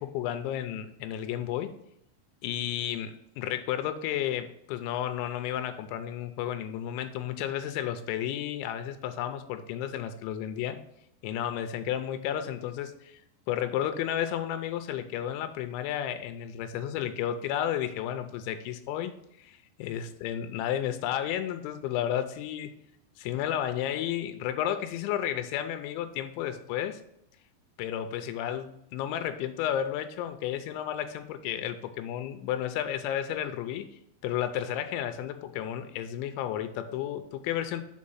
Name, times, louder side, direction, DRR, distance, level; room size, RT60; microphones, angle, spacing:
voice 1, 0.0-1.7 2.4-10.8 11.2-13.2 13.5-19.1 19.4-22.7 23.2-27.0 27.8-33.9 34.2-37.8, left 10 dB, 85° left, 9 dB, 3.0 m, -32 dB
6.3 x 4.7 x 5.6 m, 0.76 s
omnidirectional pair, 5.2 m